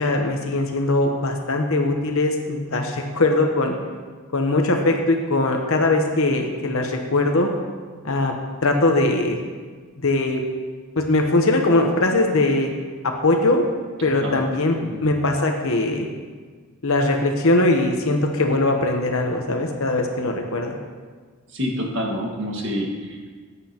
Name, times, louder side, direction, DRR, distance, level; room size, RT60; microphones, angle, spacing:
voice 1, 0.0-3.7 4.3-7.5 8.0-8.3 8.6-9.4 10.0-10.4 11.0-12.7 13.0-13.6 14.0-14.7 15.0-16.1 16.8-20.8, left 2 dB, 65° left, 3 dB, 1.0 m, -21 dB
voice 2, 14.0-14.4 14.8-15.0 21.5-23.3, equal, 55° right, 0 dB, 1.7 m, -28 dB
15.0 x 9.8 x 3.0 m, 1.5 s
head